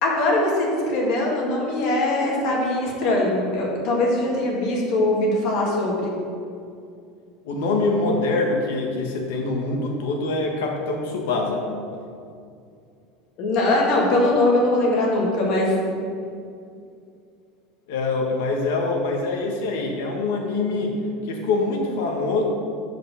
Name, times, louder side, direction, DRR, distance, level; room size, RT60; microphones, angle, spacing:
voice 1, 0.0-6.1 13.4-15.7, left 1 dB, 45° left, -2 dB, 1.9 m, -21 dB
voice 2, 7.4-11.6 17.9-20.9 21.3-22.4, left 3 dB, 75° left, 1 dB, 1.5 m, -24 dB
6.6 x 5.1 x 6.9 m, 2.4 s
cardioid pair, 170°, 0 cm